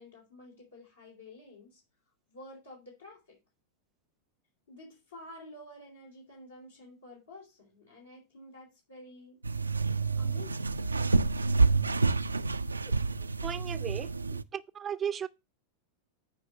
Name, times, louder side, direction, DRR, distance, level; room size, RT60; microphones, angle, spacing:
voice 1, 0.0-1.8 2.3-3.4 4.7-9.4 10.2-10.6, left 1 dB, 75° left, 3.6 m, -50 dB
sound 1, 9.4-14.4, right 3 dB, 80° right, 0.3 m, -28 dB
voice 2, 13.4-14.1 14.5-15.3, right 8 dB, 20° right, 0.5 m, -35 dB
8.6 x 4.7 x 5.7 m
figure-of-eight pair, 90°, 0 cm